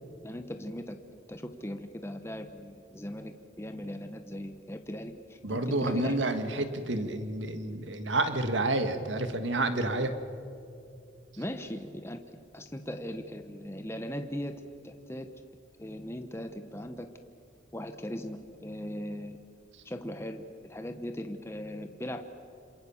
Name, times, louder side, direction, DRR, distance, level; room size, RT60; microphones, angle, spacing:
voice 1, 0.2-1.0 1.3-6.2 11.4-12.2 12.5-14.5 14.8-15.3 15.8-17.1 17.7-19.4 19.8-22.2, equal, 15° left, 7 dB, 1.0 m, -39 dB
voice 2, 5.4-10.2, right 2 dB, 75° right, 8 dB, 1.8 m, -29 dB
27.5 x 27.0 x 7.2 m, 2.5 s
head